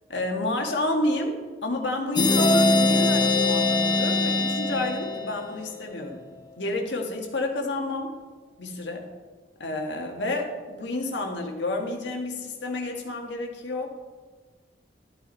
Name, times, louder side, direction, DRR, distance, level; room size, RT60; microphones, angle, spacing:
voice 1, 0.1-6.2 6.6-8.1 8.6-9.1 9.6-13.9, left 2 dB, 85° left, 1 dB, 1.7 m, -30 dB
sound 1, 2.2-5.7, left 2 dB, 25° left, 0.7 m, -22 dB
12.5 x 8.8 x 4.1 m, 1.4 s
head